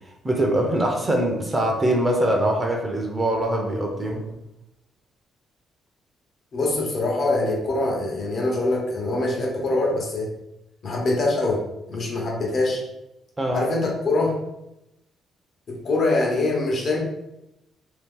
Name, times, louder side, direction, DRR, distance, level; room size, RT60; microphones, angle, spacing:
voice 1, 0.2-4.3 13.4-13.7, right 1 dB, 20° right, 1 dB, 0.7 m, -23 dB
voice 2, 6.5-10.3 10.8-12.8 13.5-14.4 15.7-17.0, left 2 dB, 55° left, -1 dB, 1.1 m, -24 dB
2.8 x 2.3 x 3.7 m, 0.87 s
cardioid pair, 90°, 0 cm